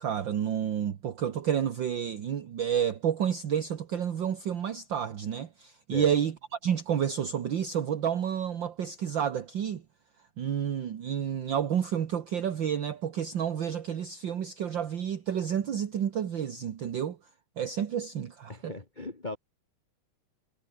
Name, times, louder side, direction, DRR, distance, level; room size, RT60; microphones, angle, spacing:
voice 1, 0.0-6.3 6.6-9.8 10.4-17.2 17.6-18.7, right 9 dB, 50° right, 1.5 m, -30 dB
voice 2, 18.5-19.4, left 2 dB, 15° left, 1.8 m, -38 dB
omnidirectional pair, 3.7 m